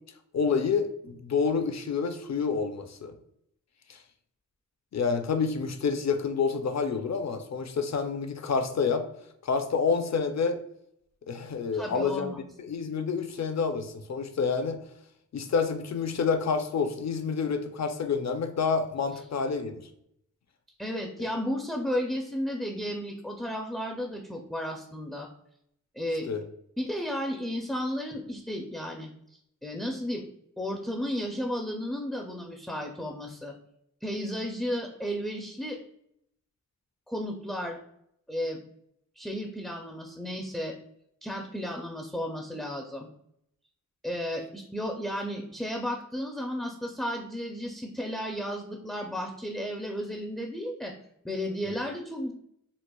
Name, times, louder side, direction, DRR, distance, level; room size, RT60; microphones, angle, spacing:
voice 1, 0.3-3.2 3.9-4.0 4.9-9.1 9.4-10.6 11.3-12.3 12.6-14.8 15.3-19.9 26.2-26.4, left 5 dB, 55° left, 8 dB, 0.5 m, -28 dB
voice 2, 11.7-12.4 20.8-25.3 26.0-26.3 26.8-29.1 29.6-30.2 30.6-33.5 34.0-35.8 37.1-37.8 38.3-38.6 39.2-40.8 41.2-43.1 44.0-50.9 51.2-52.3, equal, ahead, 1 dB, 0.4 m, -33 dB
4.2 x 2.4 x 2.2 m, 0.74 s
wide cardioid pair, 80°, 32 cm